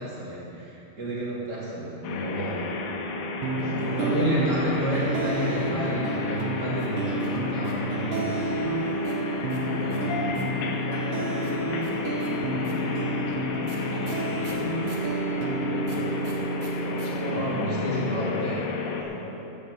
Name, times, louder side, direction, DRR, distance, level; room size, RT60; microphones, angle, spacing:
voice 1, 0.0-2.7 4.0-8.5 17.2-18.6, right 1 dB, 35° right, -7 dB, 1.6 m, -30 dB
sound 1, 2.0-19.0, left 3 dB, 75° left, 2.4 m, -31 dB
sound 2, 3.4-18.4, right 2 dB, 75° right, 2.9 m, -31 dB
voice 2, 3.5-6.1 9.8-10.8 11.1-14.9 15.6-18.5 19.0-19.4, left 1 dB, 45° left, -4 dB, 2.1 m, -38 dB
sound 3, 6.7-8.4 9.0-10.6 11.4-15.1 15.8-17.1 17.3-17.4 17.6-18.1, right 5 dB, 55° right, 3.2 m, -50 dB
12.0 x 7.9 x 8.0 m, 2.9 s
omnidirectional pair, 5.9 m